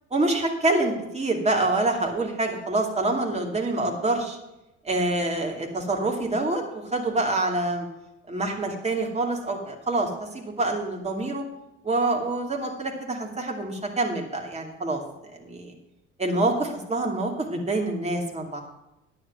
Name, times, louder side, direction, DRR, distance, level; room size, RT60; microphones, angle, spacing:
voice 1, 0.1-4.4 4.8-7.9 8.3-11.4 11.8-15.0 15.4-15.7 16.2-18.6, right 2 dB, 15° right, 0 dB, 2.6 m, -26 dB
9.8 x 7.8 x 6.1 m, 0.92 s
figure-of-eight pair, 55°, 38 cm